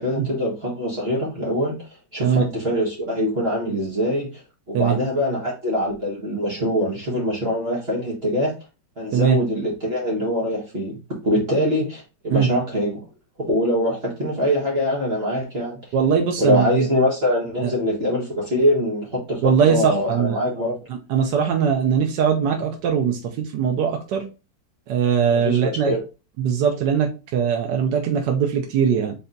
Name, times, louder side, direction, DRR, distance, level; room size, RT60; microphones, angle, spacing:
voice 1, 0.0-4.4 4.7-8.5 9.0-13.0 13.5-15.8 16.4-20.8 25.3-26.0, left 1 dB, 35° right, -4 dB, 1.6 m, -23 dB
voice 2, 9.1-9.4 12.3-12.5 15.9-16.9 17.6-17.7 19.4-20.4 21.1-24.2 24.9-25.9 26.4-29.1, right 7 dB, 75° right, 2 dB, 1.3 m, -20 dB
4.2 x 3.3 x 3.8 m, 0.31 s
omnidirectional pair, 1.9 m